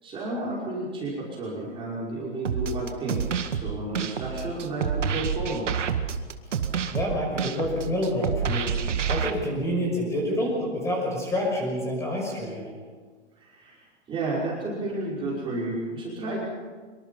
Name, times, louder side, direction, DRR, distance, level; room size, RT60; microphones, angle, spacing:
voice 1, 0.0-5.7 13.4-13.8 14.1-16.4, right 2 dB, 15° right, -5 dB, 5.4 m, -32 dB
sound 1, 2.4-9.3, right 7 dB, 90° right, 2.0 m, -28 dB
voice 2, 6.9-8.7 9.1-12.7, left 1 dB, 10° left, -1 dB, 6.0 m, -28 dB
25.5 x 23.5 x 5.6 m, 1.5 s
hypercardioid pair, 155°, 35 cm